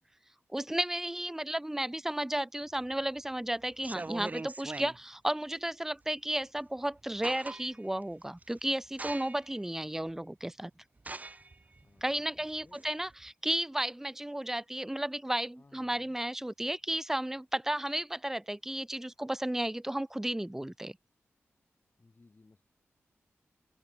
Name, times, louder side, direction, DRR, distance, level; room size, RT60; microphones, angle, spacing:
voice 1, 0.5-10.7 12.0-21.0, right 1 dB, 10° right, 0.4 m, -33 dB
sound 1, 2.8-3.2 3.7-5.0 6.6-6.7 7.0-7.9 8.4-8.6 9.0-9.6 10.1-10.2 11.0-13.3, right 3 dB, 30° right, 0.9 m, -42 dB
voice 2, 12.3-12.9 15.6-16.2 22.0-22.6, left 3 dB, 40° left, 2.7 m, -62 dB
open air
cardioid pair, 55°, 5 cm